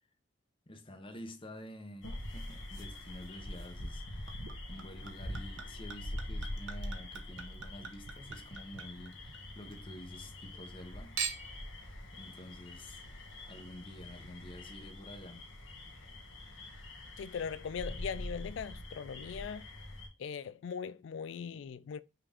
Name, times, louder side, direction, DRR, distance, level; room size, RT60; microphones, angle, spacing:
voice 1, 0.7-11.2 12.1-13.0 13.5-15.5, left 1 dB, 25° left, 0.8 m, -49 dB
sound 1, 2.0-20.1, left 1 dB, 85° left, 1.6 m, -44 dB
Chink clink / Liquid, 4.3-9.8 10.1-10.8 11.2-11.7 12.4-12.5, right 6 dB, 75° right, 0.8 m, -44 dB
voice 2, 17.2-19.6 20.2-22.0, left 6 dB, 70° left, 0.3 m, -40 dB
5.8 x 2.5 x 3.4 m
head